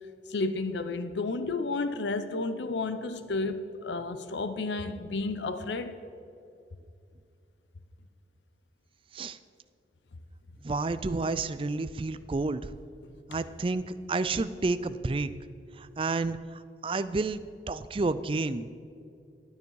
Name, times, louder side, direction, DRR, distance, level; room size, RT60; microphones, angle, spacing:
voice 1, 0.3-6.0, left 3 dB, 85° left, 0.6 m, -32 dB
voice 2, 10.6-12.7 13.3-15.3 15.8-17.4 17.7-18.8, right 3 dB, 30° right, 0.4 m, -30 dB
15.0 x 9.4 x 4.7 m
head